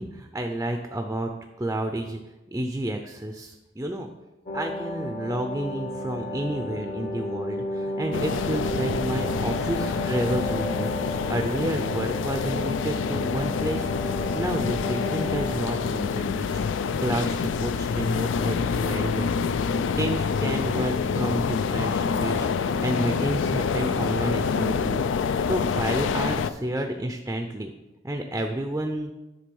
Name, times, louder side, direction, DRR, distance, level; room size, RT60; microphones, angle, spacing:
voice 1, 0.0-1.3 1.6-2.2 2.5-4.1 4.5-13.9 14.3-19.4 20.0-22.5 22.8-25.0 25.5-27.7 28.0-29.1, right 1 dB, 15° right, 4 dB, 0.5 m, -30 dB
sound 1, 4.5-17.5 17.8-17.9, equal, 40° left, 0.8 m, -34 dB
sound 2, 8.1-26.5, left 5 dB, 85° left, 0.4 m, -27 dB
10.5 x 3.8 x 5.4 m, 1.0 s
head